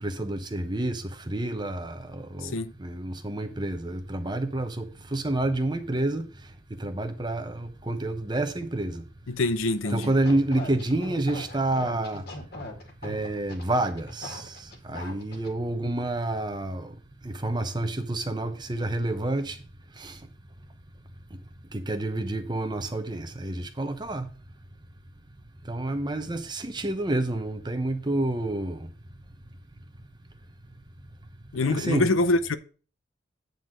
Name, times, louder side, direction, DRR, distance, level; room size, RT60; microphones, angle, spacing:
voice 1, 0.0-2.5 2.8-6.3 6.8-9.0 9.9-12.2 13.0-16.9 17.2-19.6 20.0-20.2 21.3-21.4 21.7-24.3 25.7-28.9 31.7-32.1, right 2 dB, 20° right, 0.8 m, -29 dB
voice 2, 2.4-2.7 9.3-10.2 31.5-32.6, left 2 dB, 85° left, 0.7 m, -25 dB
sound 1, 9.8-15.5, left 1 dB, 50° left, 2.0 m, -40 dB
9.2 x 4.0 x 6.4 m
head